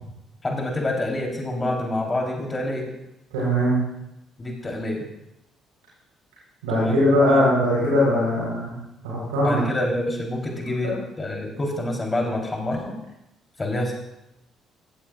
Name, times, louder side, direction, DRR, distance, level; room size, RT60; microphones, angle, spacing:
voice 1, 0.4-2.9 4.4-5.1 6.7-7.0 7.3-7.5 9.4-12.9 13.6-13.9, left 1 dB, 25° left, 0 dB, 3.7 m, -27 dB
voice 2, 3.3-3.7 6.6-8.7 9.0-9.6 10.8-11.0, left 1 dB, 75° right, -7 dB, 4.3 m, -20 dB
16.0 x 15.5 x 2.5 m, 0.87 s
figure-of-eight pair, 45°, 0 cm